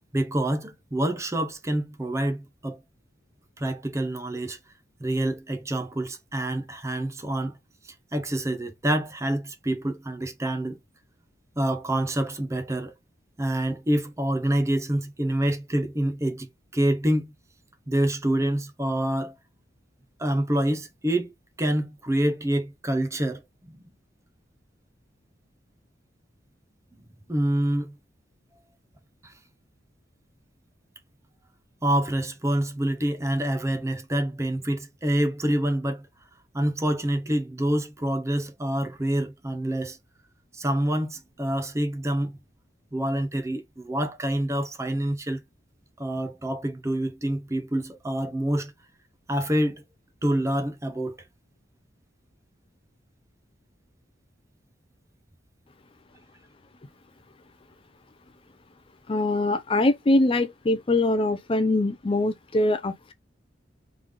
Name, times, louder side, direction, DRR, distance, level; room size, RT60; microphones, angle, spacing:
voice 1, 0.0-2.8 3.6-4.6 5.0-7.5 7.8-10.8 11.6-12.9 13.4-17.3 17.9-19.3 20.2-21.3 21.6-23.4 23.7-23.8 27.3-27.9 29.2-29.3 31.8-36.0 36.5-40.0 40.5-42.3 42.9-45.4 46.0-48.7 49.3-49.8 50.2-51.2, right 1 dB, 15° right, 0.6 m, -27 dB
voice 2, 59.1-63.1, left 2 dB, 30° left, 0.4 m, -23 dB
3.6 x 3.3 x 3.5 m
head